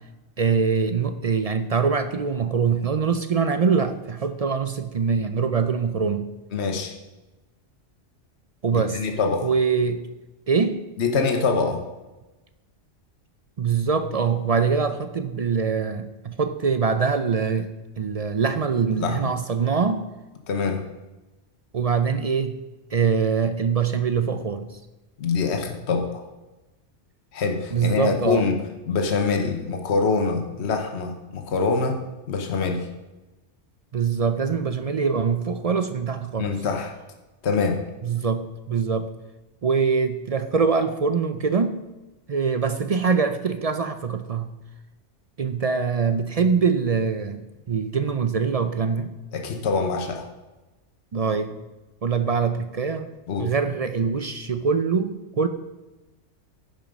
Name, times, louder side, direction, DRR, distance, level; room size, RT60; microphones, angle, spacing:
voice 1, 0.4-6.3 8.6-9.0 9.4-10.1 10.5-10.8 13.6-20.0 21.7-22.5 22.9-24.8 27.7-28.5 33.9-36.5 38.0-39.1 39.6-41.8 42.3-44.5 45.4-49.1 51.1-51.6 52.0-53.1 53.4-55.5, right 5 dB, 55° right, 10 dB, 0.4 m, -23 dB
voice 2, 6.5-6.9 8.7-9.5 11.0-11.8 18.9-19.3 20.5-20.8 25.2-26.3 27.3-28.6 28.9-32.0 32.3-32.9 36.4-36.9 37.4-37.8 49.3-50.3 53.3-53.5, left 4 dB, 65° left, 4 dB, 1.3 m, -24 dB
11.0 x 7.2 x 5.2 m, 1.1 s
omnidirectional pair, 1.3 m